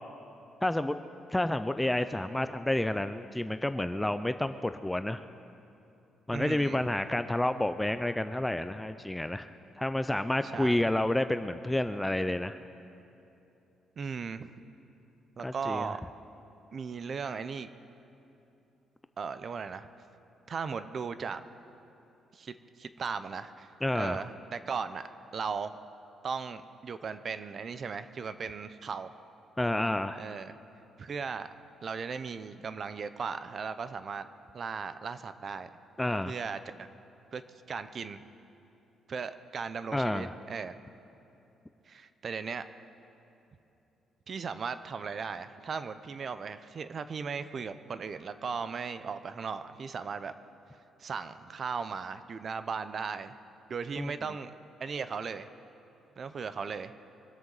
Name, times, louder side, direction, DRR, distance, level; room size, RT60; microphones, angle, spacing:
voice 1, 0.6-1.0 1.3-5.2 6.3-12.6 15.4-15.9 23.8-24.3 29.6-30.2 36.0-36.3 39.9-40.3 54.0-54.1, left 1 dB, 5° left, 10 dB, 0.3 m, -30 dB
voice 2, 6.3-6.8 10.5-10.8 14.0-14.5 15.4-16.0 16.7-17.7 19.2-19.9 20.5-21.4 22.3-25.1 25.3-25.8 26.2-29.1 30.2-30.6 31.0-31.5 31.8-34.3 34.5-35.7 36.3-36.9 37.3-37.4 37.7-38.2 39.1-40.8 41.9-42.6 44.3-50.3 51.0-53.3 53.7-54.5 54.8-55.5 56.2-56.9, right 5 dB, 35° right, 12 dB, 0.6 m, -37 dB
24.5 x 13.0 x 4.0 m, 2.9 s
cardioid pair, 150°, 0 cm